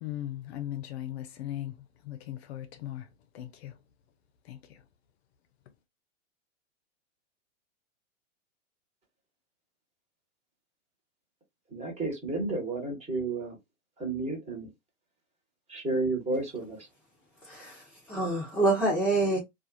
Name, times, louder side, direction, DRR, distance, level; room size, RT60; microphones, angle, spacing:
voice 1, 0.0-3.1 3.3-3.8 4.4-4.8, left 12 dB, 55° left, 0.5 m, -38 dB
voice 2, 11.7-13.6 14.0-14.7 15.7-16.9, right 2 dB, 15° right, 1.2 m, -32 dB
voice 3, 17.4-19.4, right 2 dB, 5° left, 0.6 m, -27 dB
2.4 x 2.3 x 2.6 m
hypercardioid pair, 120°, 37 cm